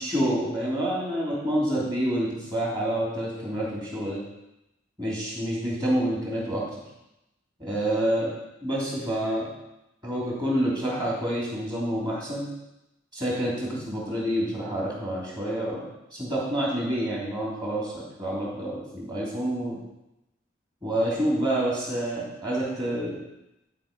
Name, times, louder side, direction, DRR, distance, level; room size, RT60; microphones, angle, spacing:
voice 1, 0.0-4.2 5.0-6.6 7.6-8.3 8.6-9.5 10.0-12.5 13.1-15.8 16.1-19.8 20.8-23.2, right 1 dB, 20° right, -5 dB, 3.0 m, -28 dB
12.5 x 4.5 x 5.3 m, 0.90 s
head